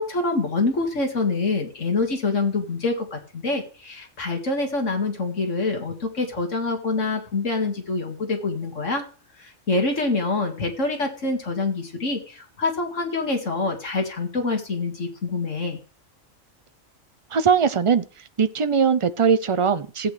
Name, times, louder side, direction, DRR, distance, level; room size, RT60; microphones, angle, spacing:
voice 1, 0.0-9.0 9.4-15.8, left 3 dB, 65° left, 2.5 m, -26 dB
voice 2, 17.3-18.0 18.4-20.1, right 6 dB, 35° right, 0.5 m, -20 dB
16.0 x 8.7 x 3.3 m
omnidirectional pair, 1.4 m